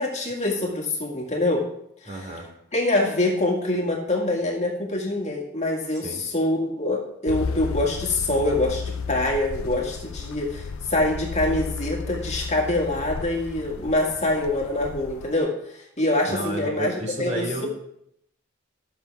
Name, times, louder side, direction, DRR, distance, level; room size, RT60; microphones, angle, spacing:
voice 1, 0.0-1.7 2.0-2.4 2.7-16.9 17.2-17.7, left 2 dB, 35° left, -1 dB, 2.0 m, -25 dB
voice 2, 2.1-2.5 6.0-6.2 16.3-17.7, right 1 dB, 35° right, 1 dB, 2.8 m, -31 dB
sound 1, 7.3-15.4, left 5 dB, 85° left, 0.5 m, -34 dB
13.0 x 7.5 x 4.7 m, 0.75 s
head